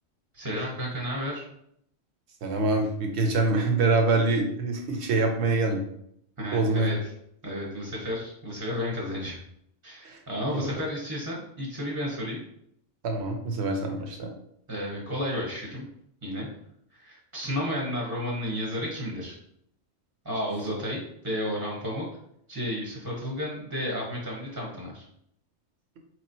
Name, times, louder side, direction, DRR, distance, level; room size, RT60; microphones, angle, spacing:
voice 1, 0.3-1.4 6.4-7.0 7.4-9.4 9.8-12.4 14.7-15.9 16.2-16.5 16.9-19.3 20.2-22.1 22.5-25.0, equal, 15° right, -3 dB, 0.8 m, -32 dB
voice 2, 2.4-5.8 6.5-7.0 10.0-10.2 10.5-10.7 13.0-14.3, right 3 dB, 65° right, 3 dB, 1.0 m, -25 dB
4.7 x 3.0 x 2.6 m, 0.72 s
omnidirectional pair, 1.3 m